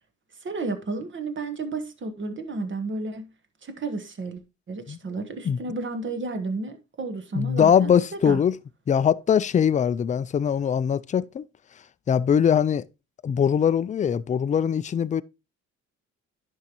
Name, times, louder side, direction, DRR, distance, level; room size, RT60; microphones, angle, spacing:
voice 1, 0.4-3.3 3.6-4.4 4.7-8.4, right 3 dB, 40° right, 1.3 m, -32 dB
voice 2, 7.3-8.6 8.9-11.4 12.1-12.8 13.2-15.2, left 8 dB, 25° left, 0.3 m, -22 dB
10.5 x 5.6 x 3.0 m
cardioid pair, 90°, 30 cm